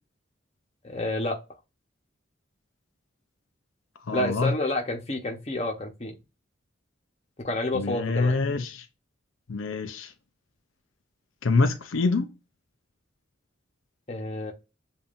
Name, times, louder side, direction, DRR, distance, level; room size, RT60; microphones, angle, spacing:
voice 1, 0.8-1.4 4.1-6.2 7.4-8.4 14.1-14.5, left 2 dB, 30° left, 1.0 m, -29 dB
voice 2, 4.0-4.6 7.7-8.9 9.5-10.1 11.4-12.3, left 3 dB, 90° left, 0.6 m, -25 dB
7.1 x 2.6 x 2.5 m
head